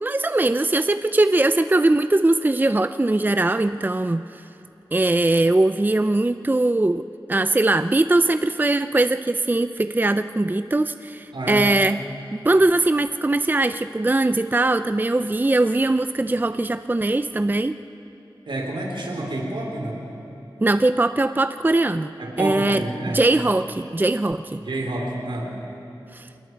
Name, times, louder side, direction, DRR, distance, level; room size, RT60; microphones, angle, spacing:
voice 1, 0.0-4.2 4.9-12.0 12.4-17.7 20.6-22.8 23.1-24.6 26.1-26.3, right 2 dB, 20° right, 11 dB, 0.5 m, -21 dB
voice 2, 11.3-11.7 18.5-20.0 22.2-23.2 24.6-25.5, right 1 dB, 80° right, 0 dB, 3.7 m, -28 dB
28.0 x 20.5 x 4.7 m, 2.8 s
wide cardioid pair, 45°, 8 cm